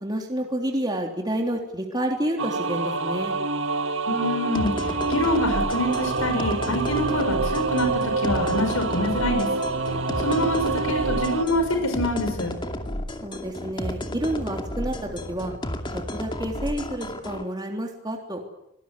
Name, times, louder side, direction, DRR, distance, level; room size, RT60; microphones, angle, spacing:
voice 1, 0.0-3.3 13.2-15.5 16.1-18.4, right 1 dB, 20° right, 2 dB, 3.3 m, -29 dB
sound 1, 2.4-11.4, right 3 dB, 65° right, 1.8 m, -27 dB
voice 2, 4.1-9.5 10.2-12.5, left 1 dB, 85° left, 6 dB, 5.6 m, -26 dB
sound 2, 4.5-17.4, left 1 dB, 20° left, 2.4 m, -32 dB
25.0 x 19.5 x 9.9 m, 0.83 s
head